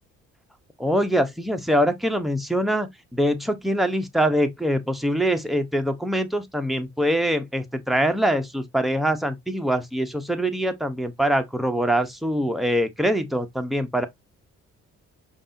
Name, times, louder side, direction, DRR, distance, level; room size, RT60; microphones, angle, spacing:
voice 1, 0.8-14.1, equal, ahead, 0.7 m, -24 dB
5.2 x 2.5 x 2.6 m
cardioid pair, 90°, 30 cm